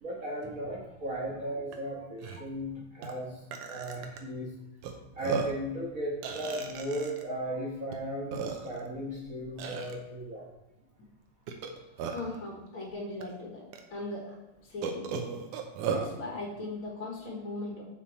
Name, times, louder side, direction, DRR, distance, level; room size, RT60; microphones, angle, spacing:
voice 1, 0.0-4.5 5.1-10.5, equal, 50° right, -4 dB, 1.0 m, -36 dB
Burping eructation, 1.7-1.8 2.2-2.4 3.0-3.1 3.5-4.2 4.8-4.9 5.2-5.6 6.2-7.2 7.9-8.0 8.3-8.9 9.6-9.9 11.5-12.4 13.2-13.3 13.7-13.8 14.8-16.1, right 6 dB, 85° right, 2.3 m, -35 dB
voice 2, 12.1-13.6 13.9-14.3 14.7-15.1 15.9-17.8, left 2 dB, 50° left, -3 dB, 2.1 m, -38 dB
7.5 x 6.1 x 4.5 m, 1.0 s
omnidirectional pair, 3.5 m